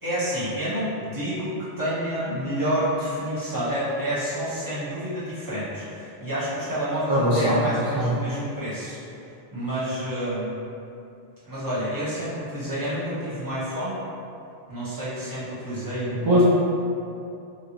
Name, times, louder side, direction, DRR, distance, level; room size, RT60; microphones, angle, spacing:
voice 1, 0.0-9.0 9.5-10.6 11.4-14.0 14.7-16.4, equal, 20° right, -11 dB, 0.9 m, -29 dB
voice 2, 7.1-7.7 8.0-8.1 16.1-16.4, equal, 40° right, -9 dB, 0.3 m, -21 dB
3.8 x 2.6 x 3.0 m, 2.7 s
omnidirectional pair, 1.0 m